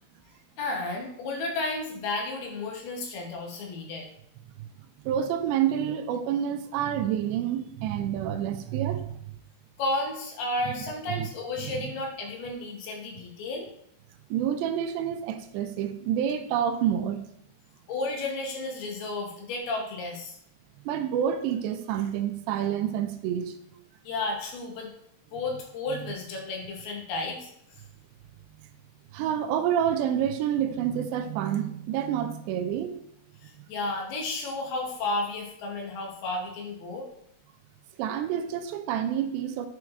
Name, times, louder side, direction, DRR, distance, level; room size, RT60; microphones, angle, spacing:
voice 1, 0.6-4.1 9.8-13.7 17.9-20.4 24.0-24.9 25.3-27.5 33.4-37.1, left 2 dB, 75° left, 2.7 m, -32 dB
voice 2, 5.0-9.2 10.7-11.3 11.6-11.9 14.3-17.2 20.9-23.6 29.1-32.9 38.0-39.7, right 9 dB, 85° right, 2.7 m, -28 dB
10.5 x 4.5 x 2.4 m
omnidirectional pair, 5.0 m